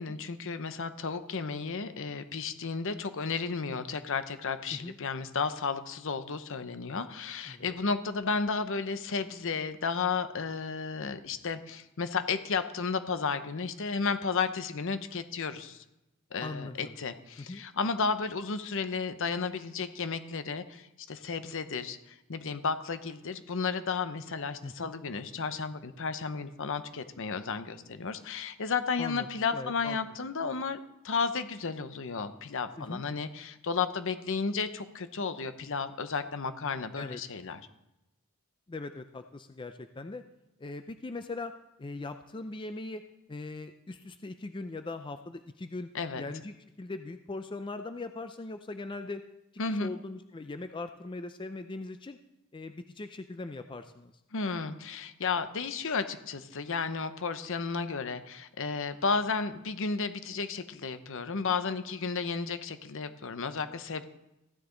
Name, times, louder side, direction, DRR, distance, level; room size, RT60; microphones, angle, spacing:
voice 1, 0.0-15.8 16.3-30.8 31.0-37.6 45.9-46.2 49.6-49.9 54.3-64.0, left 5 dB, 65° left, 11 dB, 0.8 m, -33 dB
voice 2, 7.5-7.8 16.4-16.9 17.4-17.6 24.6-24.9 29.0-29.3 29.5-30.0 32.8-33.0 36.9-37.2 38.7-40.2 40.6-41.5 41.8-43.0 43.3-45.9 46.2-49.2 49.8-52.2 52.5-54.1, left 3 dB, 20° left, 8 dB, 0.4 m, -40 dB
15.0 x 9.8 x 3.9 m, 0.91 s
head